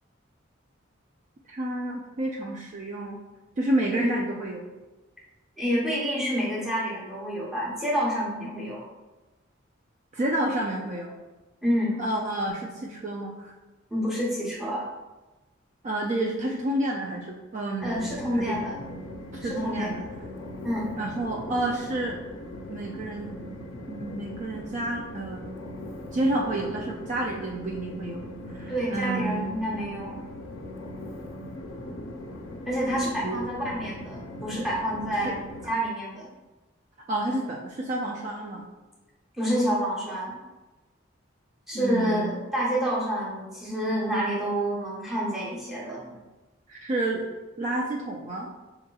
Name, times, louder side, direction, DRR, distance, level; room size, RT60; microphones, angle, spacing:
voice 1, 1.5-3.2 3.6-4.7 10.1-11.2 12.0-13.5 15.8-18.0 18.3-18.5 19.3-20.0 21.0-22.2 22.7-23.3 23.9-25.6 26.1-28.2 28.5-29.5 33.2-33.4 35.2-35.3 37.1-38.7 41.7-42.3 46.7-47.2 47.6-48.5, right 1 dB, 40° right, -1 dB, 0.3 m, -30 dB
voice 2, 5.6-8.9 11.6-12.0 13.9-14.8 17.8-18.8 19.4-20.1 20.6-20.9 28.7-30.3 32.6-35.4 35.6-36.3 39.4-40.4 41.7-46.2, equal, ahead, -5 dB, 0.9 m, -28 dB
Train, 17.8-35.7, left 1 dB, 80° left, 0.5 m, -40 dB
4.6 x 2.9 x 2.2 m, 1.1 s
head